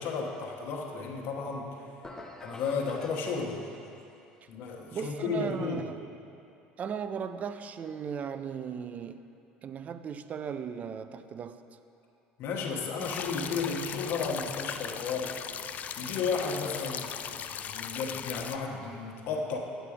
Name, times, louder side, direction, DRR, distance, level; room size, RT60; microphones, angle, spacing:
voice 1, 0.0-1.7 2.4-3.6 4.5-5.8 12.4-15.4 16.0-19.6, left 5 dB, 65° left, 0 dB, 1.2 m, -33 dB
sound 1, 2.0-4.1, left 2 dB, 15° left, 0.9 m, -48 dB
voice 2, 4.9-6.0 6.8-9.2 9.6-11.6, right 7 dB, 40° right, 11 dB, 0.4 m, -37 dB
sound 2, 13.0-18.6, left 8 dB, 45° left, 0.3 m, -38 dB
9.0 x 6.7 x 4.9 m, 2.7 s
supercardioid pair, 95°, 4 cm